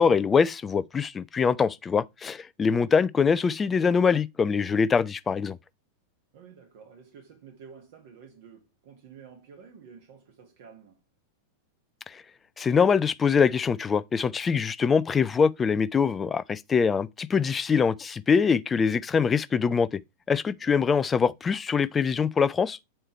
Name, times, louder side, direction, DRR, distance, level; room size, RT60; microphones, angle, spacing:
voice 1, 0.0-5.6 12.6-19.9 20.3-22.8, left 6 dB, 20° left, 0.4 m, -23 dB
voice 2, 6.3-11.0 20.3-20.8, right 6 dB, 50° right, 1.7 m, -51 dB
8.2 x 4.4 x 4.4 m
figure-of-eight pair, 90°, 0 cm